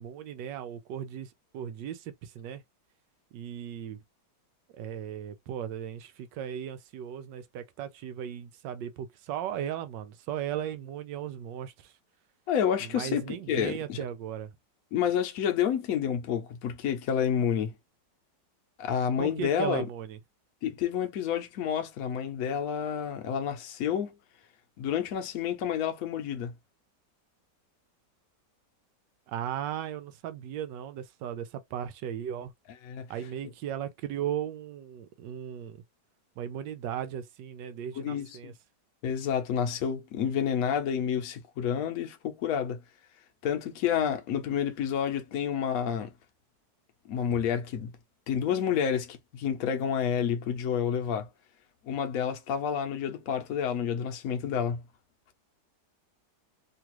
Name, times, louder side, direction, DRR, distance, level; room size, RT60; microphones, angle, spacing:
voice 1, 0.0-2.6 3.3-4.0 4.7-11.9 12.8-14.5 19.2-20.2 29.3-32.5 33.1-35.8 36.4-38.5, right 9 dB, 90° right, 1.2 m, -36 dB
voice 2, 12.5-14.0 14.9-17.7 18.8-19.9 20.6-24.1 24.8-26.5 32.8-33.1 37.9-38.5 39.0-42.8 43.4-46.1 47.1-47.9 48.3-51.3 51.8-54.8, left 8 dB, 65° left, 1.0 m, -29 dB
3.2 x 2.4 x 2.9 m
omnidirectional pair, 1.9 m